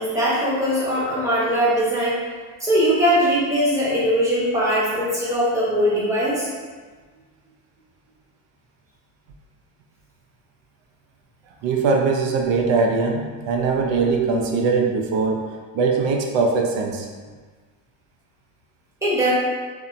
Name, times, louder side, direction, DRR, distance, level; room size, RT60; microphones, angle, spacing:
voice 1, 0.0-2.2 2.6-6.5 19.0-19.3, equal, 5° right, -9 dB, 1.0 m, -20 dB
voice 2, 11.6-15.5 15.7-17.1, right 4 dB, 70° right, 2 dB, 0.6 m, -21 dB
2.7 x 2.1 x 2.5 m, 1.4 s
supercardioid pair, 90°, 47 cm